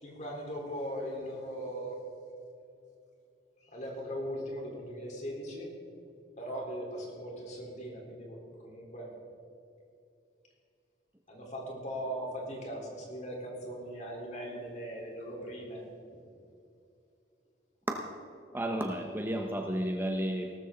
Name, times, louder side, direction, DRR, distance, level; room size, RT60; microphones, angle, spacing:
voice 1, 0.0-2.0 3.7-5.7 6.4-8.4 8.6-9.1 11.3-15.8, equal, 40° left, -1 dB, 3.9 m, -39 dB
voice 2, 18.5-20.5, right 1 dB, 10° right, 3 dB, 0.8 m, -32 dB
18.0 x 13.5 x 3.9 m, 2.6 s
head